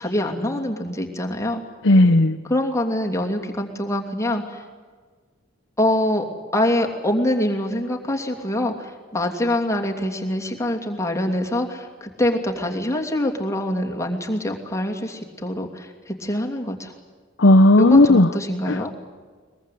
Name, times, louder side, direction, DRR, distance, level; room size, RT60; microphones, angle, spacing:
voice 1, 0.0-1.6 2.4-4.6 5.8-6.2 6.5-16.9 17.8-18.9, left 1 dB, 15° left, 1 dB, 2.8 m, -24 dB
voice 2, 1.8-2.4 17.4-18.3 18.7-18.9, left 2 dB, 65° left, 3 dB, 0.9 m, -14 dB
22.5 x 22.0 x 8.5 m, 1.5 s
head